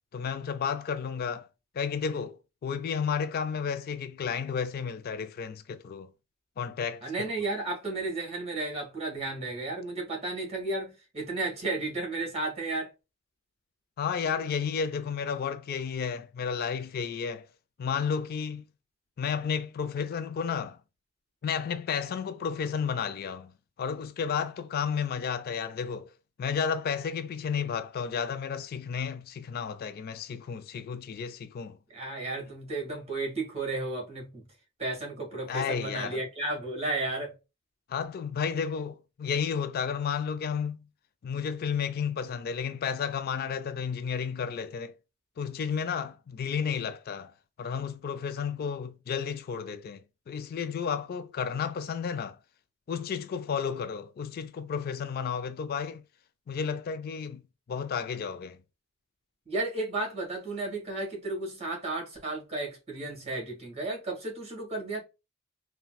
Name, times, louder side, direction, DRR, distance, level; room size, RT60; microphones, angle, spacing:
voice 1, 0.1-1.5 1.7-6.1 6.6-7.3 14.0-17.5 17.8-18.6 19.2-20.8 21.4-23.5 23.8-26.1 26.4-31.8 35.5-36.2 37.9-40.8 41.2-44.9 45.4-47.3 47.6-50.0 50.3-52.4 52.9-56.0 56.5-57.4 57.7-58.6, left 6 dB, 50° left, 0.3 m, -32 dB
voice 2, 7.0-12.9 31.9-34.4 34.8-37.3 59.5-65.0, right 2 dB, 30° right, 1.6 m, -33 dB
4.0 x 2.2 x 2.2 m
head